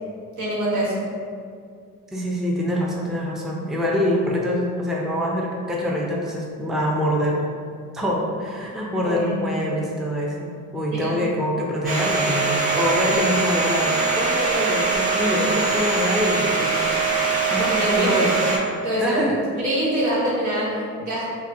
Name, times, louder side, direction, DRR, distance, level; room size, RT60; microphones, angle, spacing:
voice 1, 0.4-1.0 9.0-9.4 10.9-11.1 13.1-13.2 17.2-18.3 18.8-19.2 19.6-21.2, right 1 dB, 70° right, -6 dB, 1.4 m, -25 dB
voice 2, 2.1-7.4 7.9-16.9 17.5-18.4 19.0-19.4, equal, ahead, -3 dB, 0.5 m, -25 dB
Domestic sounds home sounds, 11.8-18.6, right 4 dB, 30° right, 1.0 m, -22 dB
5.3 x 2.2 x 2.7 m, 2.2 s
cardioid pair, 90°, 30 cm